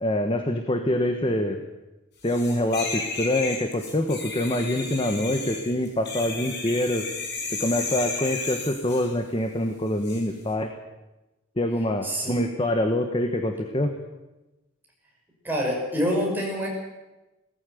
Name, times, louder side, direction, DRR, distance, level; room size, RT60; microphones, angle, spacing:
voice 1, 0.0-1.6 2.2-7.1 7.5-10.7 11.6-13.9, left 1 dB, 25° left, 5 dB, 1.3 m, -25 dB
sound 1, 2.2-9.1 10.0-10.2, left 4 dB, 55° left, 5.7 m, -33 dB
voice 2, 12.0-12.4 15.4-16.7, equal, 10° right, -2 dB, 6.3 m, -26 dB
19.0 x 15.0 x 9.3 m, 1.0 s
head